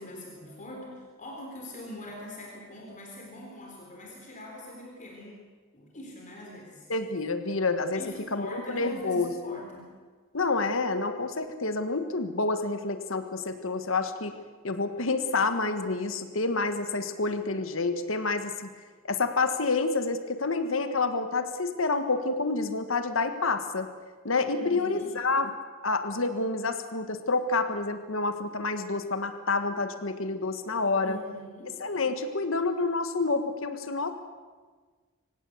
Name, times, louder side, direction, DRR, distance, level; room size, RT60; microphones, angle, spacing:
voice 1, 0.0-5.5 5.7-6.9 7.9-9.9 24.5-25.2 31.0-31.8, left 1 dB, 40° left, -1 dB, 3.9 m, -43 dB
voice 2, 6.9-8.0 8.3-9.6 10.3-14.4 14.6-18.7 19.0-23.9 24.3-25.5 25.8-31.2 31.8-34.1, left 3 dB, 70° left, 9 dB, 1.6 m, -28 dB
25.5 x 16.5 x 8.1 m, 1.5 s
head